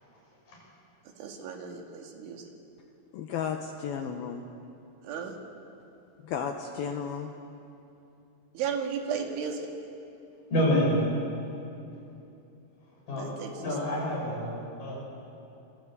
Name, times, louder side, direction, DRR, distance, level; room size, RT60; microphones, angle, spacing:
voice 1, 1.2-2.5 5.0-5.4 8.5-9.7 13.2-13.8, right 6 dB, 70° right, 2 dB, 4.4 m, -34 dB
voice 2, 3.1-4.5 6.2-7.3, left 7 dB, 85° left, 4 dB, 2.1 m, -33 dB
voice 3, 10.5-11.1 13.1-13.3 13.6-14.5 14.8-15.0, equal, 40° left, -3 dB, 8.9 m, -27 dB
28.0 x 22.0 x 8.2 m, 2.7 s
omnidirectional pair, 5.9 m